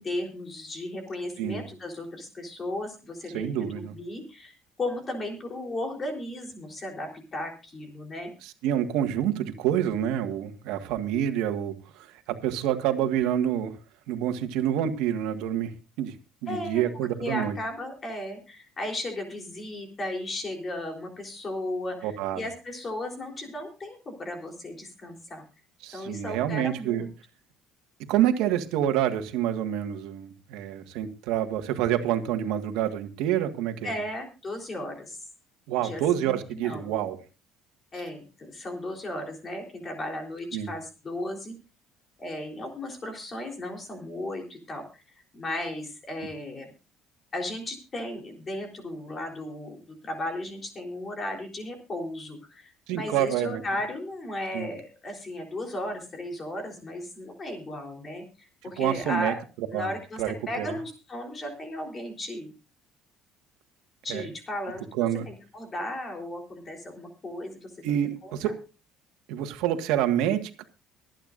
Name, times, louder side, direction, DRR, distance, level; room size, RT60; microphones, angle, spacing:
voice 1, 0.0-8.3 16.5-25.4 25.9-27.1 33.8-35.2 35.8-36.9 37.9-41.6 42.2-44.8 45.3-46.7 47.3-58.2 58.6-59.4 59.7-62.5 64.0-64.8 65.3-68.0 68.2-68.5, left 1 dB, 20° left, 2 dB, 3.6 m, -35 dB
voice 2, 3.3-3.9 8.4-13.7 14.1-16.1 16.4-17.6 22.0-22.4 25.8-27.1 28.1-33.9 35.7-37.2 40.5-40.7 52.9-53.6 54.5-54.7 58.8-59.3 59.7-59.9 60.2-60.8 64.1-64.3 64.9-65.2 67.8-68.5 69.3-70.6, right 11 dB, 80° right, 7 dB, 1.6 m, -27 dB
24.5 x 9.1 x 2.6 m, 0.32 s
cardioid pair, 160°, 0 cm